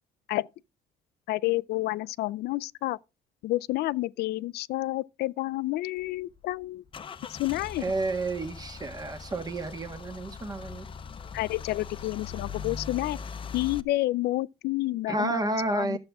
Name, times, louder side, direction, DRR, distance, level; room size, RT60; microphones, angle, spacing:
voice 1, 1.3-3.0 3.4-6.8 7.3-7.8 11.3-13.2 13.5-16.0, left 18 dB, 70° left, 0.4 m, -29 dB
Car / Engine starting / Idling, 6.0-13.8, left 6 dB, 30° left, 0.7 m, -41 dB
voice 2, 7.8-10.9 15.1-16.0, right 2 dB, 20° right, 1.4 m, -30 dB
12.0 x 7.3 x 3.5 m
cardioid pair, 110°, 17 cm